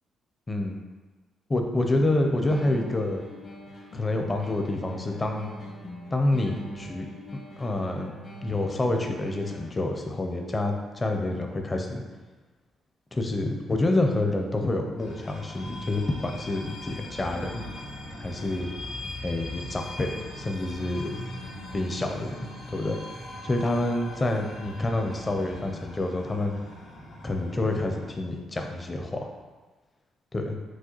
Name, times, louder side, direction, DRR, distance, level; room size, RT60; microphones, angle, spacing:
voice 1, 0.5-0.8 1.5-3.2 3.9-5.5 6.1-7.1 7.6-8.1 8.4-12.0 13.1-17.6 18.2-18.7 19.2-21.2 21.7-23.0 23.4-26.6 27.2-29.3 30.3-30.6, left 2 dB, 25° left, 3 dB, 0.5 m, -28 dB
sound 1, 2.0-10.0, equal, 50° left, 1.0 m, -42 dB
sound 2, 15.0-28.1, left 1 dB, 80° left, 1.5 m, -40 dB
6.2 x 2.2 x 3.0 m, 1.3 s
cardioid pair, 90°, 0 cm